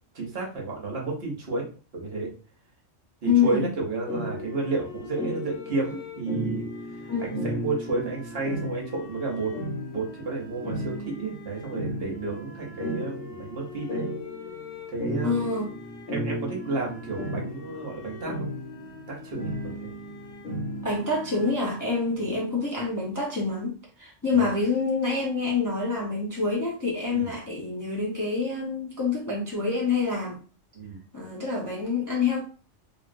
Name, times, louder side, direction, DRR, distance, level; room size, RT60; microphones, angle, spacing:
voice 1, 0.1-1.7 1.9-2.3 3.2-6.6 6.9-9.5 9.9-14.1 14.9-15.5 16.1-18.5 19.1-19.9 24.3-24.5 27.1-27.3 30.7-31.0, right 3 dB, 55° right, -1 dB, 1.0 m, -31 dB
voice 2, 3.2-3.7 7.1-7.4 15.2-15.7 20.8-30.4 31.1-32.4, left 4 dB, 20° left, -4 dB, 0.5 m, -26 dB
sound 1, 4.1-21.5, left 1 dB, 75° left, 1.1 m, -35 dB
3.1 x 2.5 x 2.5 m, 0.38 s
omnidirectional pair, 1.3 m